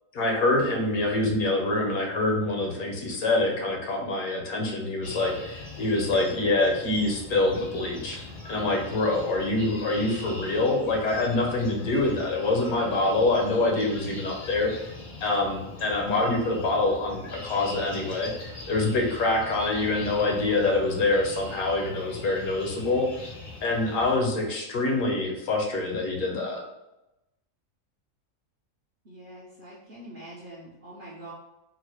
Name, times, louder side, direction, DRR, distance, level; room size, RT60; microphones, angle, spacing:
voice 1, 0.1-8.2 8.4-14.7 15.2-23.1 23.6-26.6, left 2 dB, 75° left, 1 dB, 1.2 m, -25 dB
sound 1, 5.0-24.2, left 2 dB, 40° left, 0.5 m, -42 dB
voice 2, 29.0-31.3, right 1 dB, 50° right, -6 dB, 0.6 m, -44 dB
3.9 x 2.1 x 3.0 m, 0.94 s
omnidirectional pair, 1.6 m